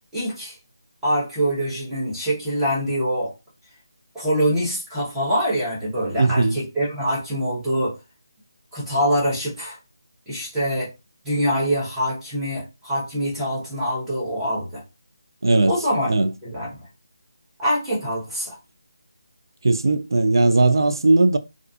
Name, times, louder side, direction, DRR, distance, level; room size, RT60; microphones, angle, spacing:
voice 1, 0.1-0.5 1.0-3.3 4.1-7.9 8.7-9.8 10.3-10.9 11.2-14.8 15.6-16.1 16.4-16.8 17.6-18.6, equal, 5° right, 0.8 m, -24 dB
voice 2, 6.2-6.6 15.4-15.7 16.1-16.3 19.6-21.4, right 2 dB, 70° right, 0.3 m, -18 dB
2.4 x 2.4 x 2.4 m
figure-of-eight pair, 175°, 2 cm